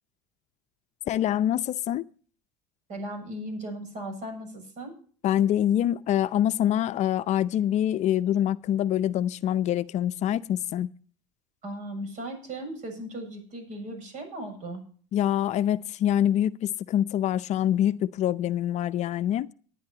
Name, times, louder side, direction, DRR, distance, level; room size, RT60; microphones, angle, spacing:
voice 1, 1.1-2.0 5.2-10.9 15.1-19.5, left 11 dB, 50° left, 0.6 m, -25 dB
voice 2, 2.9-4.9 11.6-14.8, right 1 dB, 55° right, 7.1 m, -37 dB
19.5 x 10.0 x 2.9 m
hypercardioid pair, 75°, 15 cm